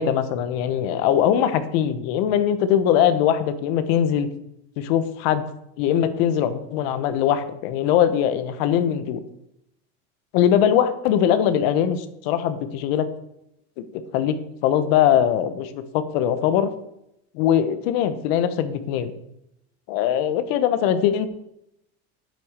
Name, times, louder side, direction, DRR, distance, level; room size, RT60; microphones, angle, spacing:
voice 1, 0.0-4.3 4.8-5.4 5.8-9.2 10.3-13.1 13.8-14.4 14.6-16.7 17.3-19.1 19.9-21.3, left 9 dB, 70° left, 11 dB, 1.3 m, -21 dB
9.0 x 8.9 x 6.7 m, 0.81 s
supercardioid pair, 145°, 31 cm